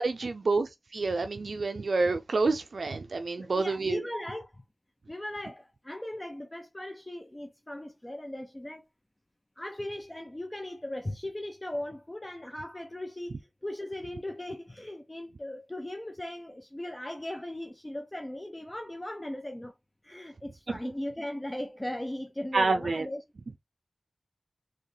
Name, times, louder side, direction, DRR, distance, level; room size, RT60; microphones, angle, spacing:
voice 1, 0.0-4.0 22.5-23.1, right 3 dB, 85° right, 0.3 m, -28 dB
voice 2, 3.4-4.6 5.1-8.8 9.6-19.7 20.0-23.2, left 1 dB, 25° left, 0.7 m, -38 dB
4.4 x 3.2 x 3.2 m
wide cardioid pair, 50°, 0 cm